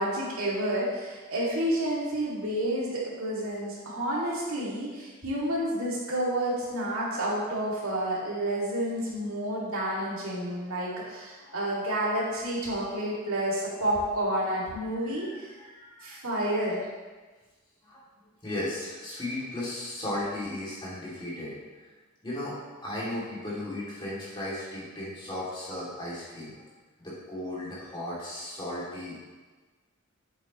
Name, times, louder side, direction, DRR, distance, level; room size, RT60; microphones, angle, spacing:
voice 1, 0.0-15.5 16.0-16.8, right 1 dB, 70° right, -6 dB, 2.3 m, -30 dB
voice 2, 15.0-16.2 17.8-18.0 18.4-21.5 22.2-26.7 27.0-29.4, left 1 dB, 20° left, -8 dB, 2.5 m, -36 dB
8.1 x 7.3 x 3.0 m, 1.3 s
head